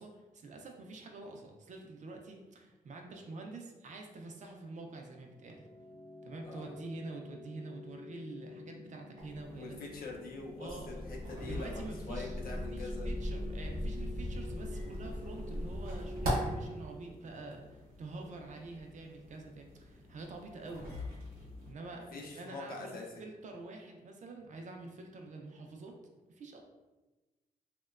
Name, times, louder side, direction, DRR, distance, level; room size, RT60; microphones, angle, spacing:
voice 1, 0.0-5.6 6.2-9.8 10.6-10.9 11.4-20.9 21.6-22.1 22.4-26.0 26.3-26.6, right 3 dB, 55° right, 2 dB, 0.4 m, -47 dB
sound 1, 5.1-17.8, left 2 dB, 5° left, 0.6 m, -49 dB
voice 2, 6.4-6.7 9.5-13.1 21.9-23.2, left 3 dB, 75° left, -1 dB, 0.5 m, -44 dB
sound 2, 9.2-21.7, equal, 70° right, 0.8 m, -43 dB
sound 3, 10.7-16.3, equal, 40° left, 0.7 m, -40 dB
2.8 x 2.1 x 2.3 m, 1.1 s
wide cardioid pair, 160°, 15 cm